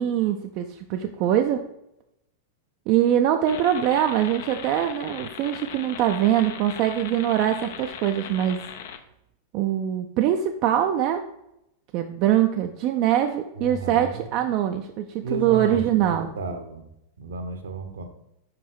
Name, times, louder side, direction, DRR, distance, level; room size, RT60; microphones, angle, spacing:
voice 1, 0.0-1.6 2.9-8.6 9.5-11.2 11.9-16.3, right 11 dB, 40° right, 6 dB, 0.4 m, -23 dB
sound 1, 3.5-9.0, left 8 dB, 55° left, 0.5 m, -39 dB
voice 2, 13.6-14.2 15.2-16.9 17.2-18.0, right 3 dB, 65° right, 8 dB, 0.8 m, -33 dB
5.4 x 4.8 x 4.6 m, 0.84 s
figure-of-eight pair, 90°, 0 cm